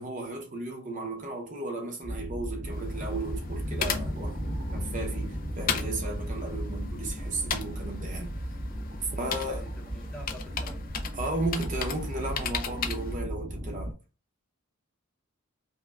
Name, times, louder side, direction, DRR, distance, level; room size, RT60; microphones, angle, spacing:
voice 1, 0.0-4.4 4.7-8.3 9.2-9.6 11.1-13.9, right 2 dB, 35° right, 0.8 m, -35 dB
sound 1, 2.0-13.9, right 1 dB, 75° right, 1.0 m, -36 dB
sound 2, 2.6-10.9, equal, 55° left, 1.1 m, -40 dB
sound 3, 2.7-13.2, left 7 dB, 40° left, 0.4 m, -37 dB
voice 2, 9.0-10.8, equal, 5° left, 0.8 m, -47 dB
5.2 x 2.2 x 2.4 m
head